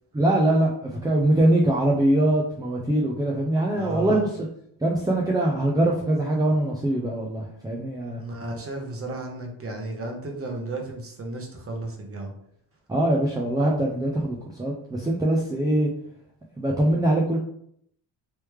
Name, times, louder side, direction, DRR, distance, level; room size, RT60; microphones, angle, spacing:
voice 1, 0.1-4.3 4.8-8.2 12.9-15.9 16.6-17.4, right 1 dB, 10° right, -2 dB, 0.3 m, -22 dB
voice 2, 3.7-4.2 8.2-12.3, right 2 dB, 30° right, 2 dB, 0.9 m, -34 dB
3.2 x 3.1 x 3.1 m, 0.68 s
cardioid pair, 130°, 45 cm